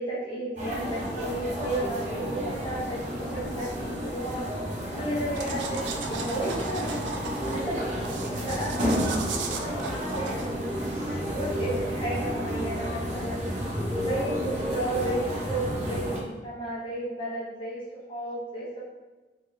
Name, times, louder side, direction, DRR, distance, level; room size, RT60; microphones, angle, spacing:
voice 1, 0.0-7.0 7.4-7.9 8.2-8.7 9.6-10.0 10.2-10.4 10.9-13.4 14.0-18.9, right 1 dB, 30° left, -6 dB, 0.7 m, -33 dB
sound 1, 0.6-16.2, equal, 40° right, 1.0 m, -31 dB
sound 2, 5.3-11.5, right 4 dB, 85° right, 0.4 m, -38 dB
voice 2, 7.4-11.7 12.1-12.7 13.7-14.6, equal, 15° right, -3 dB, 0.6 m, -43 dB
3.9 x 2.5 x 3.4 m, 1.2 s
head